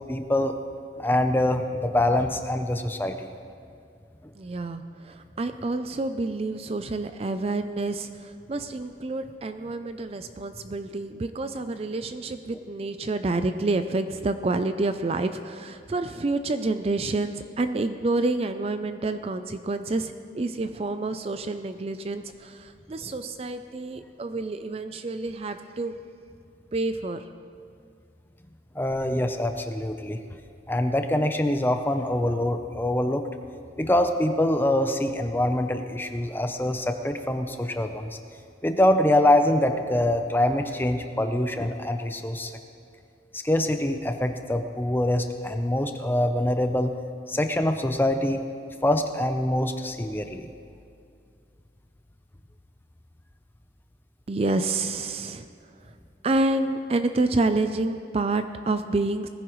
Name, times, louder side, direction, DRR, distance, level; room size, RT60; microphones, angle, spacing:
voice 1, 0.1-0.5 1.0-3.3 28.7-30.2 30.7-33.3 33.8-38.2 38.6-42.5 43.3-46.9 47.3-48.4 48.8-50.5, left 1 dB, 10° left, 6 dB, 0.6 m, -24 dB
voice 2, 4.4-25.9 26.7-27.2 54.3-55.5 56.2-59.3, right 2 dB, 35° right, 9 dB, 0.4 m, -28 dB
19.5 x 15.0 x 3.1 m, 2.4 s
head